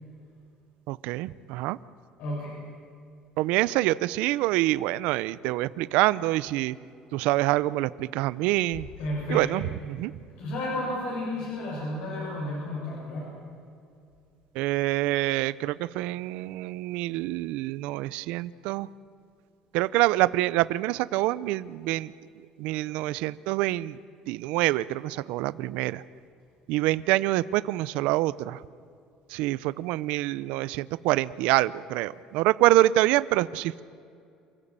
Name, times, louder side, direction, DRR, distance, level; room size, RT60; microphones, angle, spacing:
voice 1, 0.9-1.8 3.4-6.7 7.1-8.9 9.3-10.1 14.6-18.9 19.7-22.1 22.6-24.0 24.3-26.0 26.7-28.6 29.3-33.8, right 17 dB, 80° right, 18 dB, 0.6 m, -26 dB
voice 2, 2.2-2.5 9.0-9.5 10.4-13.3, left 1 dB, 70° left, -4 dB, 7.5 m, -32 dB
29.0 x 15.0 x 8.9 m, 2.4 s
cardioid pair, 160°, 2 cm